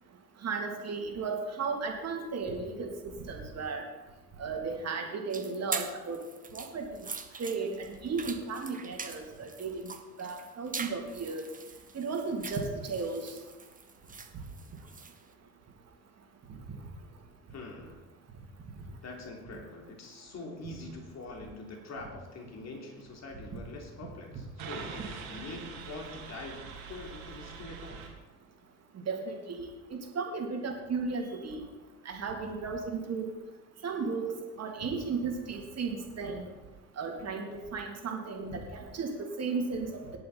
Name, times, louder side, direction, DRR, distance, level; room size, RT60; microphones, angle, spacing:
voice 1, 0.4-3.8 4.4-6.2 6.5-6.8 7.4-7.7 8.0-9.9 10.2-11.4 11.9-12.6 12.9-13.3 29.1-31.6 32.0-33.3 33.8-36.5 37.0-38.6 38.9-39.9, right 4 dB, 35° right, 1 dB, 3.1 m, -34 dB
sound 1, 5.3-15.2, right 5 dB, 20° right, 1.4 m, -42 dB
voice 2, 17.5-18.0 19.0-28.0, left 2 dB, 40° left, 1 dB, 3.5 m, -44 dB
sound 2, 24.6-28.1, right 5 dB, 55° right, 3.2 m, -43 dB
17.5 x 11.0 x 4.3 m, 1.2 s
figure-of-eight pair, 55°, 41 cm